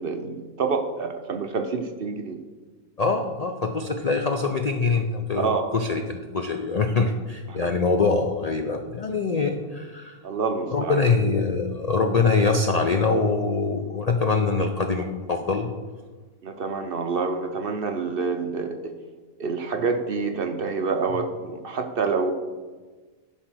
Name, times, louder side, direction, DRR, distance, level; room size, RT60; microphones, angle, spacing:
voice 1, 0.0-2.4 5.4-5.7 7.5-7.7 10.2-11.0 16.4-18.9 19.4-22.3, right 4 dB, 50° right, 5 dB, 0.7 m, -27 dB
voice 2, 3.0-10.2 10.7-15.7, left 4 dB, 65° left, 5 dB, 0.4 m, -24 dB
11.5 x 4.0 x 6.2 m, 1.3 s
omnidirectional pair, 1.5 m